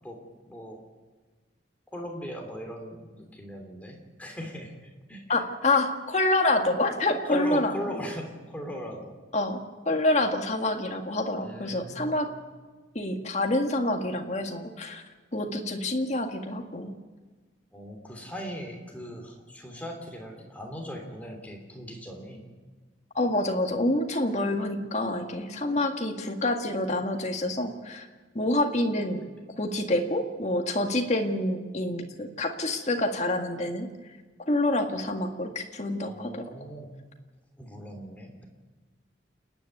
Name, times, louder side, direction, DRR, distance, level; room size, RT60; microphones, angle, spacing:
voice 1, 0.0-0.8 1.9-5.2 7.3-9.2 11.4-12.2 17.7-22.5 36.0-36.9 37.6-38.4, equal, 10° left, 1 dB, 3.1 m, -39 dB
voice 2, 5.3-7.7 9.3-9.6 9.9-12.3 13.0-15.0 15.3-16.9 23.2-28.1 28.4-29.2 29.6-33.9 34.5-36.4, left 2 dB, 35° left, 4 dB, 1.8 m, -27 dB
29.0 x 10.0 x 9.3 m, 1.4 s
head